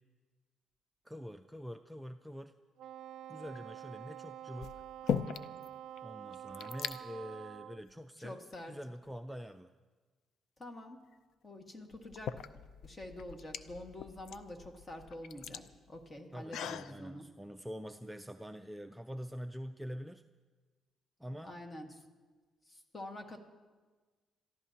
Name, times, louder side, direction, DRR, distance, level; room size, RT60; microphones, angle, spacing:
voice 1, 1.0-2.6 3.3-4.8 6.0-8.4 8.7-9.7 16.3-20.2 21.2-21.6, equal, 5° right, 7 dB, 0.4 m, -45 dB
Wind instrument woodwind instrument, 2.8-7.8, right 11 dB, 75° right, 0.4 m, -47 dB
sound 1, 3.4-3.8 4.6-5.7 6.0-6.1 6.3-7.0 7.8-7.9 8.5-9.4 11.1-11.2 11.9-16.9, left 8 dB, 75° left, 0.5 m, -40 dB
voice 2, 8.2-8.7 10.6-11.0 11.4-12.4 12.8-17.3 21.4-21.9 22.7-23.4, left 1 dB, 30° left, 4 dB, 1.8 m, -47 dB
28.0 x 14.0 x 2.9 m, 1.4 s
cardioid pair, 90°, 0 cm